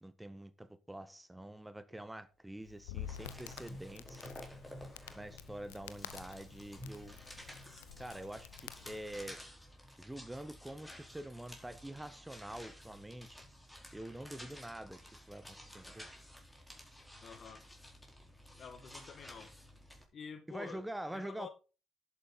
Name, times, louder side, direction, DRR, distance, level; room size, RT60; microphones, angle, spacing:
voice 1, 0.0-4.3 5.1-7.2 8.0-8.5 8.8-9.4 10.0-13.5 13.9-16.1 20.5-21.5, right 1 dB, 10° right, 1.3 m, -46 dB
Crackle, 2.6-9.3, left 11 dB, 80° left, 0.7 m, -50 dB
sound 1, 2.8-20.0, equal, 10° left, 4.4 m, -52 dB
voice 2, 17.2-17.7 18.6-19.6 20.1-20.9 21.1-21.5, left 6 dB, 55° left, 2.1 m, -49 dB
11.0 x 8.3 x 4.1 m
figure-of-eight pair, 45°, 0 cm